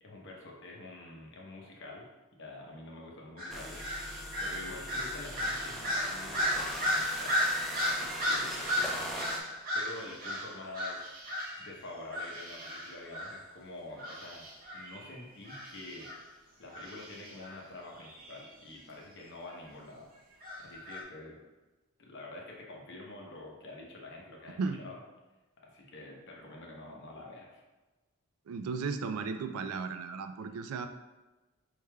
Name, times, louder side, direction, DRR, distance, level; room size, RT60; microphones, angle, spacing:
voice 1, 0.0-2.1 2.4-4.1 4.4-7.4 7.8-8.8 9.1-11.2 11.6-14.5 14.7-16.1 16.6-20.1 20.6-21.4 22.0-25.0 25.6-27.6, left 2 dB, 55° left, -1 dB, 0.8 m, -47 dB
sound 1, 3.4-11.7 12.1-13.4 14.0-16.2 16.7-17.6 18.0-18.4 20.4-21.0, left 1 dB, 40° right, 0.8 m, -35 dB
sound 2, 3.5-9.4, equal, ahead, 0.4 m, -40 dB
voice 2, 28.5-30.9, right 4 dB, 80° right, 8 dB, 0.3 m, -35 dB
4.8 x 3.3 x 2.2 m, 1.1 s
head